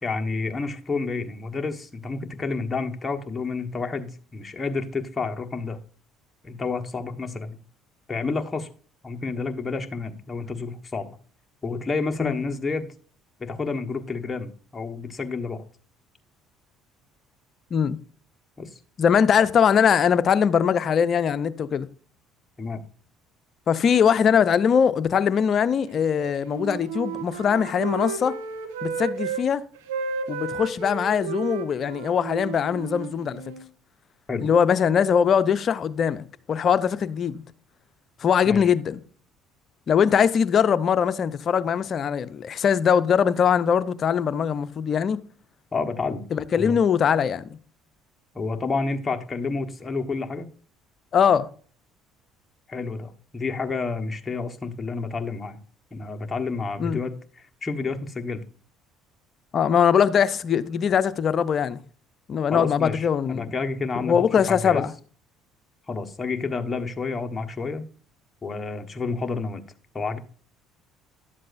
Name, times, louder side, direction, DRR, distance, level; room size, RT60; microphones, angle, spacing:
voice 1, 0.0-5.8 6.4-7.6 8.1-8.7 9.0-11.2 11.6-12.9 13.4-15.6 18.6-18.7 22.6-22.8 34.3-34.5 38.4-38.7 45.7-46.2 46.6-46.8 48.3-50.5 52.7-55.6 55.9-57.2 57.6-58.4 62.5-64.2 64.5-64.9 65.9-67.8 68.4-69.6 69.9-70.2, left 4 dB, 20° left, 1.3 m, -29 dB
voice 2, 19.0-21.9 23.7-28.4 28.8-29.6 30.3-33.4 34.4-37.4 38.2-39.0 39.9-45.2 46.3-47.5 51.1-51.5 56.8-57.0 59.5-61.8 62.3-63.5 64.0-64.9, left 7 dB, 50° left, 0.6 m, -21 dB
Wind instrument woodwind instrument, 26.0-29.4 29.7-33.7, right 6 dB, 90° right, 1.0 m, -33 dB
11.5 x 7.6 x 2.6 m
supercardioid pair, 75°, 0 cm